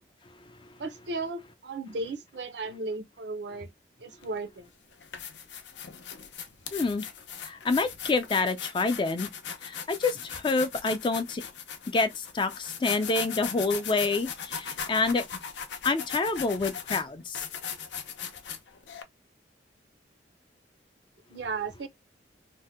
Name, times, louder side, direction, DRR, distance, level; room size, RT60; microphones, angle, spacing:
voice 1, 0.8-3.7 4.0-4.7 21.3-21.9, right 3 dB, 75° right, 0.6 m, -35 dB
sound 1, 4.2-4.4 4.9-19.0, left 7 dB, 85° left, 0.6 m, -38 dB
voice 2, 6.7-7.1 7.4-9.3 9.6-11.4 11.9-15.2 15.8-17.4, left 3 dB, 25° left, 0.3 m, -27 dB
2.7 x 2.1 x 3.4 m
head